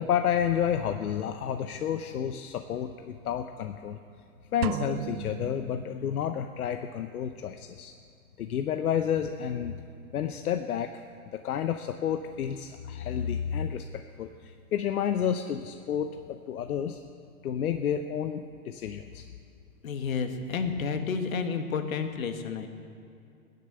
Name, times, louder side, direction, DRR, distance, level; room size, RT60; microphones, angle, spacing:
voice 1, 0.0-4.0 4.5-7.9 8.4-9.8 10.1-10.9 11.3-17.0 17.4-19.3, left 9 dB, 85° left, 7 dB, 0.9 m, -30 dB
sound 1, 4.6-6.4, right 12 dB, 90° right, 0.6 m, -36 dB
voice 2, 19.8-22.7, left 5 dB, 70° left, 7 dB, 1.7 m, -30 dB
17.0 x 11.0 x 6.7 m, 2.4 s
hypercardioid pair, 170°, 43 cm